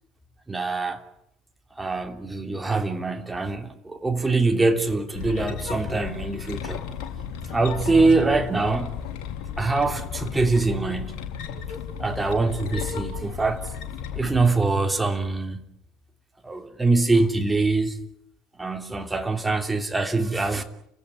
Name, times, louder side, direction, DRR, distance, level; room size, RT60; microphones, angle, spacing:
voice 1, 0.5-1.0 1.8-6.8 7.5-9.0 9.6-11.3 12.0-13.7 14.1-15.7 16.4-18.0 18.6-20.6, right 3 dB, 15° right, 3.0 m, -24 dB
sound 1, 5.1-14.6, left 8 dB, 55° left, 3.5 m, -34 dB
29.5 x 16.5 x 9.7 m
figure-of-eight pair, 60°, 0 cm